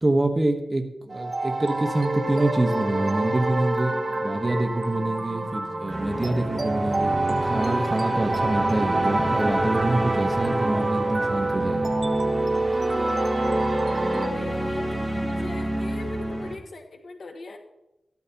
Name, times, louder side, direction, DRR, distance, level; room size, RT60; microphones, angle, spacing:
voice 1, 0.0-3.9 4.2-11.9, right 2 dB, 20° right, 6 dB, 1.2 m, -26 dB
sound 1, 1.1-14.3, right 2 dB, 45° right, 1.1 m, -27 dB
sound 2, 2.7-13.0, equal, 70° right, 2.5 m, -43 dB
sound 3, 5.9-16.6, right 1 dB, ahead, 1.8 m, -29 dB
voice 2, 14.0-17.6, left 3 dB, 75° left, 3 dB, 1.4 m, -39 dB
13.5 x 12.0 x 2.9 m, 0.94 s
wide cardioid pair, 85°, 0 cm